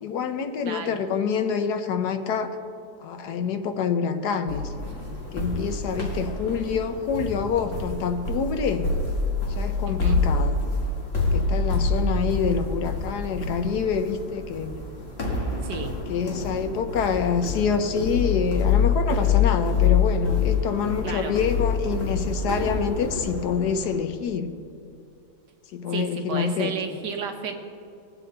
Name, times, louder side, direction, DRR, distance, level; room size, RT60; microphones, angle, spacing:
voice 1, 0.0-2.6 3.0-4.7 5.3-8.9 9.6-10.6 11.2-14.7 16.1-24.6 25.7-27.0, left 6 dB, 70° left, 8 dB, 1.2 m, -26 dB
sound 1, 4.5-24.0, left 4 dB, 35° left, 1.9 m, -26 dB
voice 2, 9.9-10.2 15.6-15.9 21.0-21.3 25.9-27.5, right 5 dB, 75° right, 4 dB, 1.6 m, -32 dB
20.0 x 7.6 x 3.9 m, 2.5 s
omnidirectional pair, 1.9 m